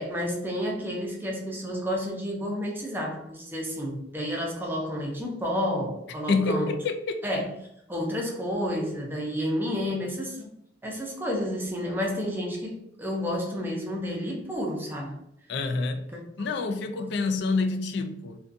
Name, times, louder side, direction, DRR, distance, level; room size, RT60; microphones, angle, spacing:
voice 1, 0.0-6.8 7.2-7.5 7.9-10.5 10.8-15.2 16.1-16.2, equal, 10° right, 0.5 m, -30 dB
voice 2, 6.3-7.2 15.5-16.1 16.4-18.4, left 3 dB, 65° left, 0.3 m, -27 dB
2.5 x 2.3 x 2.5 m
head